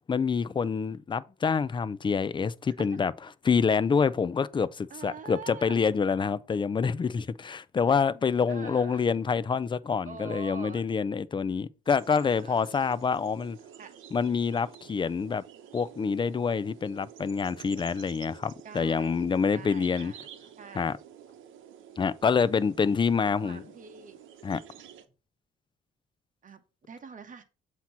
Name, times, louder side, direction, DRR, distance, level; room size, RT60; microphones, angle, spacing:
voice 1, 0.1-3.1 3.5-13.6 14.1-15.4 15.7-20.1 20.8-20.9 22.0-23.6 24.4-24.6, left 5 dB, 25° left, 0.4 m, -27 dB
voice 2, 2.7-3.0 4.9-5.9 8.5-9.0 10.0-10.9 12.2-12.7 13.8-14.0 18.6-20.2 20.6-21.0 23.2-24.2 26.4-27.4, right 6 dB, 40° right, 1.2 m, -45 dB
sound 1, 11.9-25.1, right 9 dB, 85° right, 0.9 m, -50 dB
7.6 x 2.9 x 5.7 m
cardioid pair, 90°, 20 cm